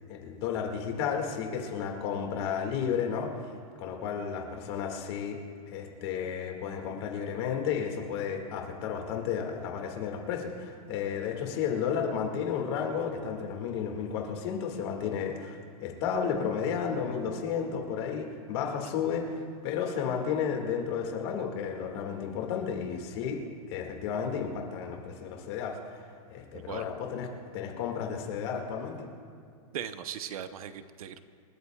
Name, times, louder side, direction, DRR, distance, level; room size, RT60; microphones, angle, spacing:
voice 1, 0.1-3.3 3.8-5.4 5.7-23.4 23.7-25.8 26.3-27.3 27.5-29.1, left 7 dB, 45° left, 2 dB, 2.0 m, -32 dB
voice 2, 26.5-26.8 29.7-31.2, right 9 dB, 70° right, 10 dB, 0.8 m, -38 dB
28.0 x 13.5 x 2.3 m, 2.3 s
supercardioid pair, 175°, 19 cm